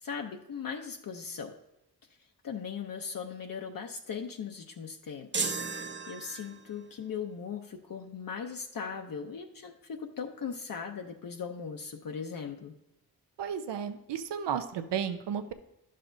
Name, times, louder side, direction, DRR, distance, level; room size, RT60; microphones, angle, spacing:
voice 1, 0.0-1.5 2.4-12.7, left 6 dB, 55° left, 3 dB, 0.7 m, -39 dB
sound 1, 5.3-6.8, right 4 dB, 30° right, 0.7 m, -34 dB
voice 2, 13.4-15.5, right 8 dB, 90° right, 9 dB, 0.7 m, -33 dB
11.0 x 6.5 x 2.6 m, 0.86 s
cardioid pair, 75°, 40 cm